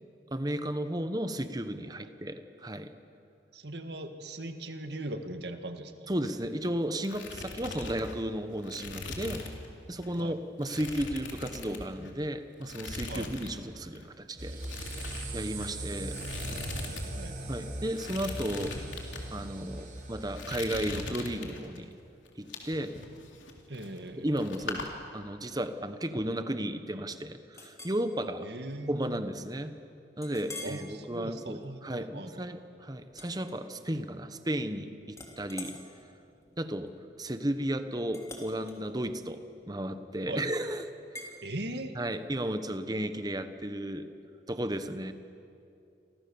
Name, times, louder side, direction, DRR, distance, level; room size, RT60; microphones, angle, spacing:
voice 1, 0.3-2.9 6.1-9.4 9.9-14.6 15.3-16.2 17.5-18.7 19.3-21.9 22.4-23.0 24.2-28.5 28.9-29.7 30.2-35.8 36.6-36.9 37.2-39.4 39.7-40.8 41.9-44.1 44.5-45.1, right 1 dB, 20° right, 9 dB, 1.1 m, -34 dB
voice 2, 3.5-6.1 10.2-10.3 13.1-13.3 17.1-17.3 23.7-24.3 28.4-29.3 30.6-32.5 40.3-40.4 41.4-42.0, right 1 dB, 60° right, 7 dB, 1.9 m, -39 dB
sound 1, 6.1-6.7 6.9-9.7 10.0-10.2 10.6-12.2 12.6-13.6 13.8-14.0 14.6-17.1 17.3-17.4 17.9-19.2 19.8-20.0 20.4-21.8 22.3-24.1 24.4-24.9, left 3 dB, 85° left, 3.5 m, -40 dB
sound 2, 14.4-20.9, right 2 dB, 45° right, 4.0 m, -40 dB
Chink clink, 27.5-28.0 28.5-28.7 29.2-29.3 30.2-30.8 31.4-31.6 33.1-34.1 34.4-34.8 35.1-40.2 41.1-41.3, left 2 dB, 15° left, 3.0 m, -47 dB
29.5 x 24.5 x 7.1 m, 2.7 s
head